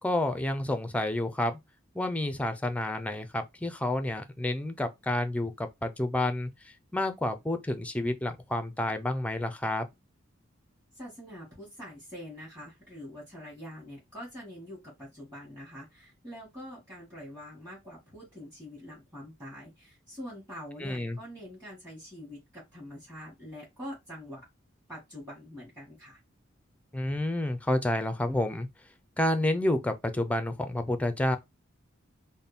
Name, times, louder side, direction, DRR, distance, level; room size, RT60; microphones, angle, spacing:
voice 1, 0.0-1.6 1.9-9.9 20.8-21.2 26.9-28.7 29.2-31.4, left 1 dB, 5° left, 0.5 m, -29 dB
voice 2, 10.9-24.5 24.9-26.2, equal, 15° right, 2.0 m, -45 dB
4.1 x 2.2 x 3.5 m
head